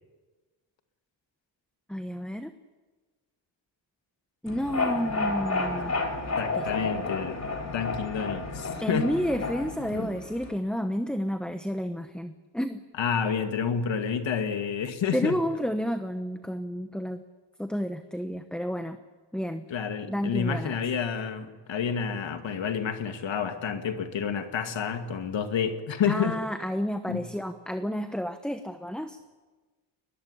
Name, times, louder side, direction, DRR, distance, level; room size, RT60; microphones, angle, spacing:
voice 1, 1.9-2.5 4.4-5.9 6.5-6.7 8.8-12.8 15.1-17.2 17.6-19.0 19.3-19.7 20.1-20.8 26.1-29.2, equal, ahead, 8 dB, 1.0 m, -30 dB
sound 1, 4.5-10.5, left 3 dB, 35° left, 3.2 m, -31 dB
voice 2, 6.4-9.1 13.0-15.4 19.7-26.4 27.1-27.3, left 7 dB, 75° left, 7 dB, 2.4 m, -29 dB
22.0 x 20.5 x 10.0 m, 1.3 s
cardioid pair, 120°, 46 cm